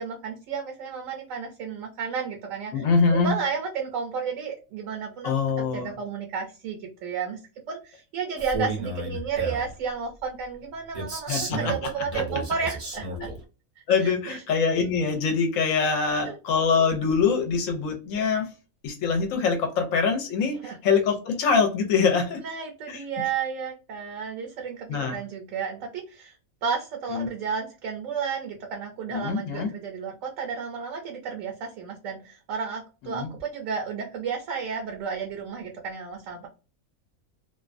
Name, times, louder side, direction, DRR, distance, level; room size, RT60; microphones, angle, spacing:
voice 1, 0.0-2.8 3.1-5.3 5.7-7.4 7.7-13.3 13.8-14.4 16.2-16.4 20.6-20.8 22.4-26.4 26.6-36.5, right 6 dB, 70° right, 1 dB, 0.9 m, -32 dB
voice 2, 2.7-3.3 5.2-5.9 11.3-11.6 12.1-12.2 13.2-13.3 13.9-18.5 18.8-22.4 22.9-23.0 24.9-25.2 27.1-27.3 29.1-29.7 33.0-33.3, left 5 dB, 70° left, 4 dB, 0.9 m, -24 dB
Male speech man speaking, 8.4-9.7 10.9-13.4, right 2 dB, 45° right, 0.5 m, -32 dB
2.5 x 2.2 x 2.4 m, 0.32 s
omnidirectional pair, 1.5 m